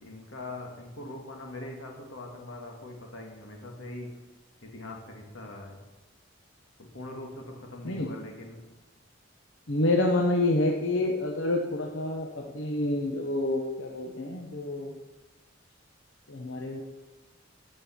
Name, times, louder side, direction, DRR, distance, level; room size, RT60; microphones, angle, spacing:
voice 1, 0.0-4.1 4.6-5.8 6.9-8.6, left 2 dB, 90° left, 1 dB, 2.0 m, -42 dB
voice 2, 9.7-14.9 16.3-16.8, left 2 dB, 65° left, 0 dB, 1.0 m, -28 dB
13.5 x 5.5 x 5.8 m, 1.1 s
head